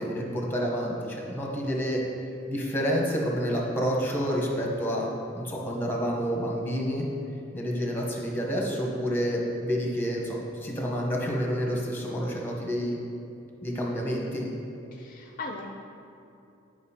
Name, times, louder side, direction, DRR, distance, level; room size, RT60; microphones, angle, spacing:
voice 1, 0.0-2.0 2.5-5.1 5.3-7.1 7.5-13.0 13.6-14.5, equal, 10° left, -1 dB, 0.9 m, -29 dB
voice 2, 13.8-14.3 14.9-15.7, left 3 dB, 45° left, 1 dB, 0.4 m, -39 dB
9.5 x 5.1 x 2.8 m, 2.7 s
head